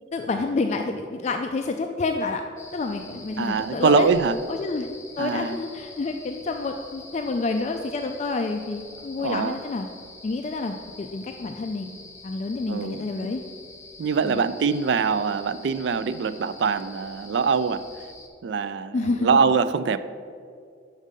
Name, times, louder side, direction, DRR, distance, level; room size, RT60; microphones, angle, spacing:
voice 1, 0.1-2.4 2.7-4.1 4.5-4.9 5.2-9.9 10.2-11.9 12.2-13.4 14.2-14.4 18.9-19.3, left 3 dB, 40° left, 5 dB, 0.3 m, -28 dB
sound 1, 2.6-18.3, left 3 dB, 15° left, 0.8 m, -46 dB
voice 2, 3.4-4.4 5.2-5.6 9.2-9.6 12.7-13.1 14.0-17.9 18.4-20.0, right 5 dB, 75° right, 13 dB, 0.4 m, -23 dB
6.4 x 5.2 x 6.5 m, 2.3 s
head